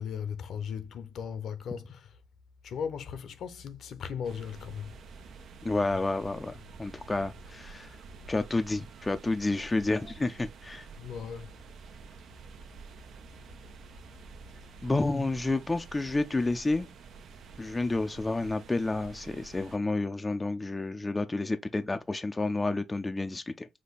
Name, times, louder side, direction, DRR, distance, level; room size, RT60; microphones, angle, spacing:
voice 1, 0.0-2.1 2.6-4.9 11.0-11.5, left 7 dB, 70° left, 0.8 m, -37 dB
sound 1, 4.2-19.8, right 5 dB, 70° right, 0.7 m, -49 dB
voice 2, 5.6-8.0 8.3-10.9 14.8-16.9 17.6-23.7, left 2 dB, 20° left, 0.4 m, -30 dB
5.2 x 2.2 x 4.0 m
cardioid pair, 90°, 0 cm